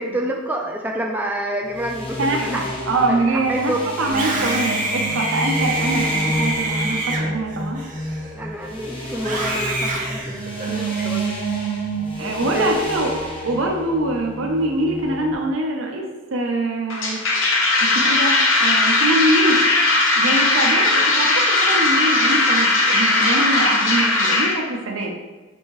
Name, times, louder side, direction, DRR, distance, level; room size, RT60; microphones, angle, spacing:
voice 1, 0.0-2.6 3.1-3.8 4.0-4.2 8.3-10.4 10.7-11.3 12.5-12.8, right 1 dB, 10° right, 0 dB, 0.3 m, -27 dB
sound 1, 1.7-15.3, right 1 dB, 25° left, 0.8 m, -29 dB
voice 2, 2.2-7.8 12.2-17.2 17.8-19.6 20.2-25.1, right 2 dB, 70° right, 1 dB, 0.7 m, -24 dB
Screaming, 4.1-8.5 9.2-10.9, right 2 dB, 40° right, 0.8 m, -26 dB
sound 2, 16.9-24.5, left 2 dB, 70° left, 0.7 m, -18 dB
6.2 x 2.7 x 3.0 m, 1.2 s
head